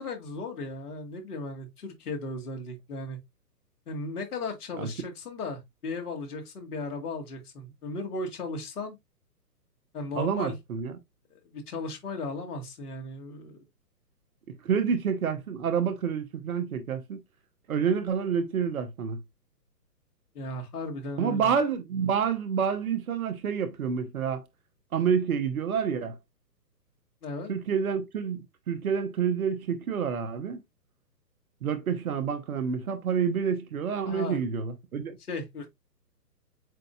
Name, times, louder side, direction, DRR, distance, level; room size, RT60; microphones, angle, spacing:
voice 1, 0.0-3.2 3.9-9.0 9.9-10.5 11.3-13.6 20.3-21.5 27.2-27.5 34.0-34.4 35.3-35.7, left 2 dB, 65° left, 1.8 m, -36 dB
voice 2, 10.2-11.0 14.6-17.2 17.7-19.2 21.2-24.4 24.9-26.1 27.5-30.6 31.6-35.2, right 7 dB, 55° right, 1.1 m, -28 dB
7.6 x 2.5 x 2.3 m
hypercardioid pair, 140°, 49 cm